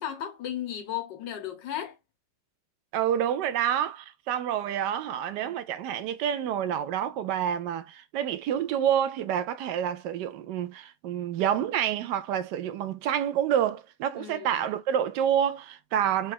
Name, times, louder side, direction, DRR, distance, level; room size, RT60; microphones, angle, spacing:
voice 1, 0.0-2.0 14.2-14.6, left 10 dB, 80° left, 1.6 m, -35 dB
voice 2, 2.9-16.3, right 9 dB, 75° right, 1.2 m, -28 dB
4.1 x 2.4 x 4.6 m
omnidirectional pair, 1.9 m